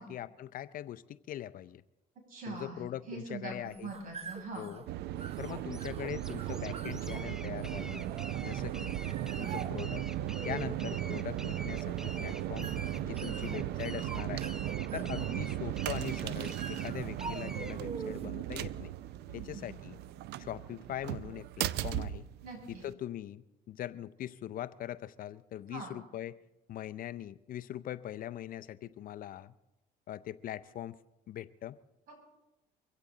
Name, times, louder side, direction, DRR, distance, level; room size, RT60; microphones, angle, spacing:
voice 1, 0.0-1.8 2.5-3.9 4.6-4.8 5.4-8.1 8.4-9.0 9.4-10.0 10.4-12.7 13.0-14.5 14.9-18.9 19.3-20.0 20.4-22.3 22.7-26.4 26.7-29.5 30.1-31.0 31.3-31.8, left 12 dB, 55° left, 15 dB, 0.5 m, -41 dB
voice 2, 2.3-2.8 3.1-4.6 13.2-13.5 19.3-19.7 22.4-22.8 25.7-25.9, right 3 dB, 55° right, 0 dB, 7.4 m, -43 dB
sound 1, 3.5-18.4, right 5 dB, 35° right, 0.9 m, -47 dB
sound 2, 4.9-22.9, right 13 dB, 80° right, 0.5 m, -37 dB
sound 3, 5.4-17.8, equal, 5° right, 0.5 m, -48 dB
23.5 x 16.0 x 3.9 m, 0.95 s
cardioid pair, 110°, 17 cm